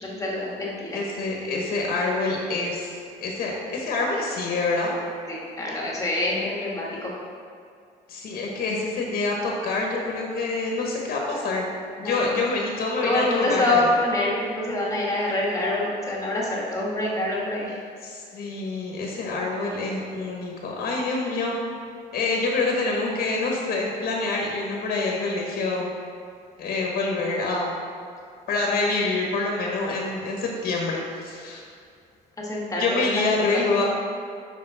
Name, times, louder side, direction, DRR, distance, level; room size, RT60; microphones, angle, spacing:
voice 1, 0.0-0.9 5.3-7.1 12.0-12.2 13.0-17.8 32.4-33.3, left 2 dB, 20° left, -4 dB, 1.9 m, -26 dB
voice 2, 0.9-4.9 8.1-11.7 12.0-13.8 18.0-21.6 22.1-26.0 26.6-27.7 28.5-31.7 32.8-33.9, left 3 dB, 60° left, -1 dB, 1.3 m, -26 dB
5.8 x 5.0 x 5.6 m, 2.4 s
cardioid pair, 110°, 17 cm